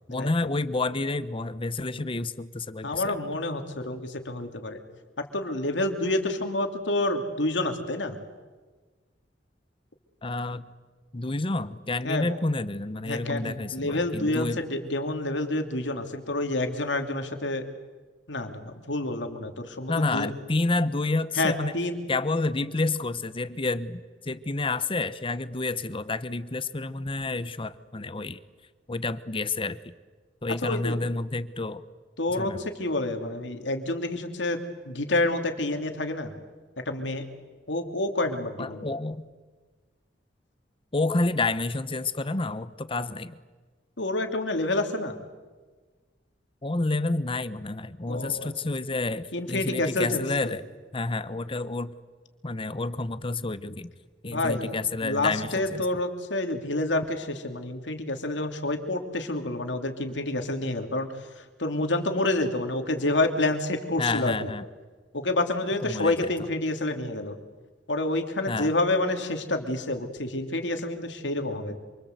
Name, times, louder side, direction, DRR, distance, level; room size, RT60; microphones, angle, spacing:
voice 1, 0.1-3.2 10.2-10.7 11.1-14.6 19.9-21.7 22.1-28.4 28.9-29.9 30.4-31.8 32.3-32.6 38.6-39.2 40.9-43.3 46.6-50.6 50.9-51.9 52.4-53.9 54.2-56.0 64.0-64.6 65.8-66.3 68.5-68.7, left 3 dB, 30° left, 14 dB, 0.9 m, -29 dB
voice 2, 2.8-4.8 5.3-8.2 12.0-12.3 13.1-17.6 18.3-20.3 21.4-22.0 30.6-31.0 32.2-34.6 34.9-36.3 36.9-37.3 37.7-38.8 44.0-45.2 48.1-48.5 49.3-50.5 54.3-54.8 55.0-61.1 61.6-64.3 65.1-67.4 67.9-71.8, left 2 dB, 85° left, 5 dB, 2.9 m, -28 dB
27.5 x 25.0 x 8.1 m, 1.4 s
head